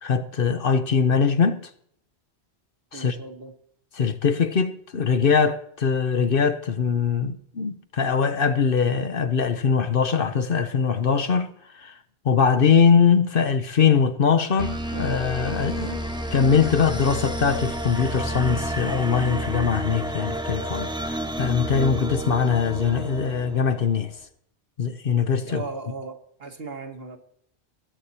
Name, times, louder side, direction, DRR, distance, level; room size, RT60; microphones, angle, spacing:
voice 1, 0.0-1.7 2.9-3.2 3.9-12.0 12.2-16.0 16.3-24.1 24.8-25.6, left 6 dB, 55° left, 1.0 m, -22 dB
voice 2, 2.9-3.5 25.4-27.2, right 4 dB, 60° right, 1.9 m, -37 dB
sound 1, 14.4-18.4 18.9-20.9 21.3-21.4, left 1 dB, 80° right, 2.7 m, -46 dB
sound 2, 14.6-24.0, right 1 dB, 5° right, 1.3 m, -30 dB
20.0 x 8.3 x 4.3 m
omnidirectional pair, 1.1 m